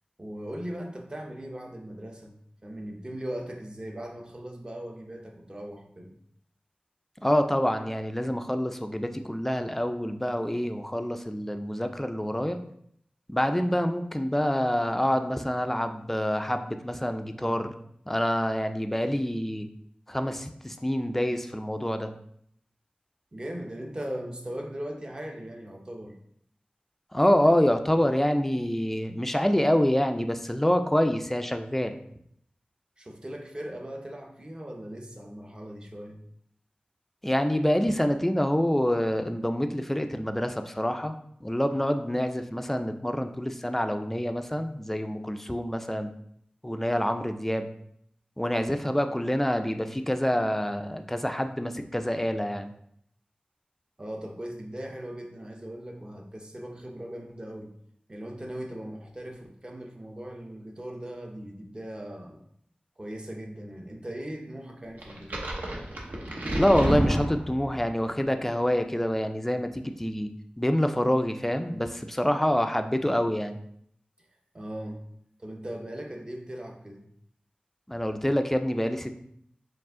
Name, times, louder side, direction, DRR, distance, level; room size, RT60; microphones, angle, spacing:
voice 1, 0.2-2.3 2.6-6.1 23.3-26.2 33.0-36.2 54.0-57.7 58.1-62.4 63.0-65.6 74.5-75.0 75.4-77.1, right 1 dB, 30° right, 2 dB, 0.6 m, -39 dB
voice 2, 7.2-12.6 13.3-17.7 18.1-19.7 20.1-22.1 27.1-32.0 37.2-41.1 41.4-46.1 46.6-47.7 48.4-52.7 66.5-70.3 70.6-73.6 77.9-79.1, equal, 10° left, 7 dB, 0.3 m, -26 dB
sound 1, 65.0-67.9, right 1 dB, 70° right, 0.8 m, -29 dB
4.7 x 2.4 x 3.6 m, 0.69 s
wide cardioid pair, 70°, 3 cm